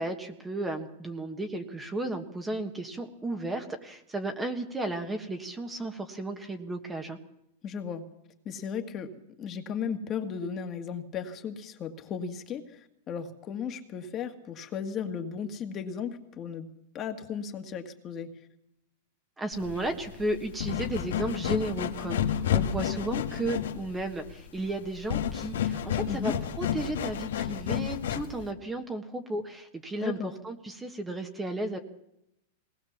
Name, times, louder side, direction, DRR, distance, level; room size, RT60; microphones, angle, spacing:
voice 1, 0.0-7.2 19.4-31.8, right 2 dB, 10° right, 6 dB, 1.4 m, -34 dB
voice 2, 7.6-8.1 8.5-9.1 9.4-16.7 16.9-18.3 26.1-26.3 30.0-30.3, left 7 dB, 25° left, 6 dB, 1.8 m, -35 dB
sound 1, 19.5-28.5, left 9 dB, 85° left, 1.9 m, -31 dB
21.5 x 19.0 x 7.2 m, 0.82 s
supercardioid pair, 165°, 0 cm